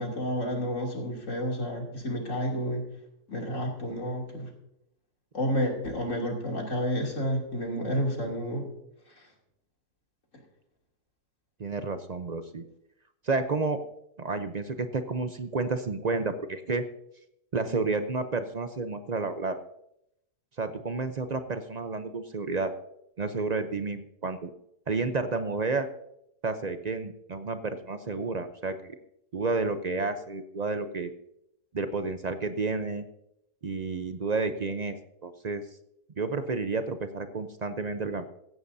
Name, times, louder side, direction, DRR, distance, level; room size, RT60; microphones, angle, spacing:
voice 1, 0.0-2.8 3.3-4.5 5.3-8.6, equal, 50° left, -1 dB, 3.2 m, -30 dB
voice 2, 11.6-12.6 13.2-13.8 14.2-16.8 17.5-19.6 20.6-22.7 23.2-24.5 24.9-25.9 26.4-28.9 29.3-31.1 31.7-33.0 33.6-34.9 35.2-35.6 36.2-38.3, right 3 dB, 55° right, 9 dB, 0.4 m, -30 dB
16.5 x 14.5 x 2.7 m, 0.78 s
omnidirectional pair, 1.7 m